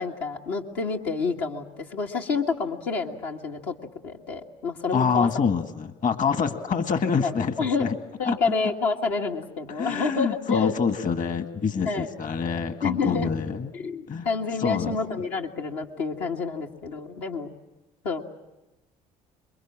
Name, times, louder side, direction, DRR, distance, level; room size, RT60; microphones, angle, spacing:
voice 1, 0.0-3.7 4.0-5.3 7.2-7.8 8.2-10.7 11.9-12.1 12.8-13.3 13.7-17.5 18.0-18.2, left 4 dB, 80° left, 0 dB, 2.0 m, -28 dB
voice 2, 4.9-7.9 8.3-8.4 9.8-13.7 14.1-14.3 14.6-15.0, left 6 dB, 50° left, 8 dB, 1.9 m, -26 dB
27.0 x 23.0 x 7.4 m, 1.0 s
hypercardioid pair, 60°, 17 cm